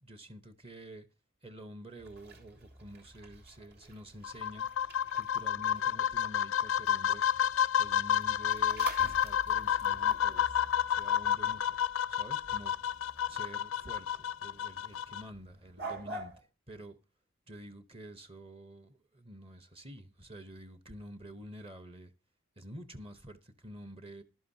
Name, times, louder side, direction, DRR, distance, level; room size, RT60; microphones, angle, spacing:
voice 1, 0.0-1.1 1.4-4.7 5.1-7.3 7.8-11.8 12.1-16.3 16.7-17.0 17.5-22.1 22.6-24.2, right 1 dB, 25° right, 0.8 m, -49 dB
sound 1, 2.0-16.4, right 3 dB, 50° right, 2.6 m, -49 dB
sound 2, 4.2-15.2, left 9 dB, 80° left, 0.5 m, -30 dB
15.0 x 11.5 x 2.7 m
head